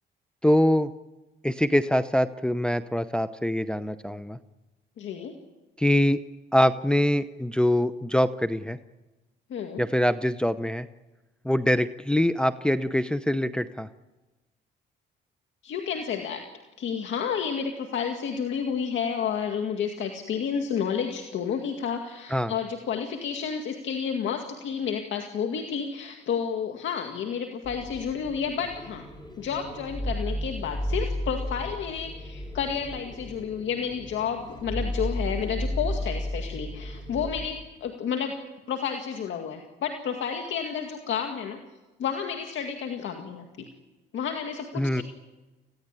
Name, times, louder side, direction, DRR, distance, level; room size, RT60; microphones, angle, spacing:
voice 1, 0.4-0.9 1.4-4.4 5.8-6.2 6.5-8.8 9.8-10.9 11.4-13.9 22.3-22.5 44.8-45.0, left 1 dB, 5° left, 10 dB, 0.8 m, -24 dB
voice 2, 5.0-5.3 9.5-9.9 15.6-16.4 16.8-29.0 29.4-38.4 38.7-41.6 42.0-43.7 44.1-45.0, left 7 dB, 75° left, 4 dB, 2.1 m, -31 dB
sound 1, 27.6-37.4, equal, 20° left, 4.6 m, -33 dB
27.0 x 16.0 x 9.8 m, 1.1 s
cardioid pair, 90°, 20 cm